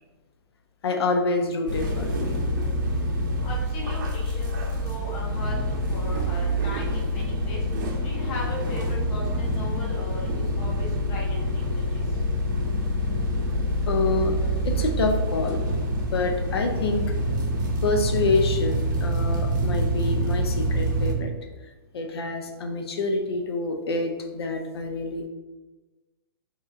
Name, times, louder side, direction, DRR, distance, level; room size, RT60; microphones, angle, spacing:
voice 1, 0.8-2.1 13.9-14.4 14.6-15.6 16.1-17.0 17.8-21.3 21.9-25.3, left 3 dB, 85° left, 4 dB, 0.5 m, -27 dB
sound 1, 1.7-21.1, equal, 50° right, 0.6 m, -26 dB
voice 2, 3.4-4.5 4.8-7.6 8.0-10.3 10.6-11.2 11.9-12.0, left 1 dB, 20° left, -3 dB, 0.5 m, -37 dB
3.5 x 2.9 x 2.4 m, 1.2 s
hypercardioid pair, 175°, 13 cm